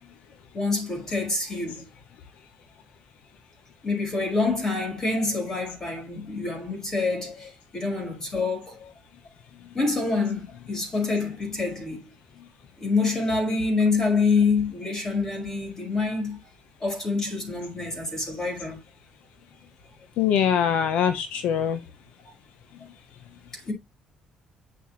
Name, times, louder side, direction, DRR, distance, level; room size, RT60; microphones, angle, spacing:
voice 1, 0.5-1.9 3.8-8.8 9.7-12.0 12.8-16.4 16.8-18.8 23.5-23.7, left 3 dB, 25° left, 5.2 m, -26 dB
voice 2, 20.2-21.8, left 8 dB, 75° left, 1.0 m, -23 dB
8.4 x 6.8 x 3.1 m
cardioid pair, 150°, 2 cm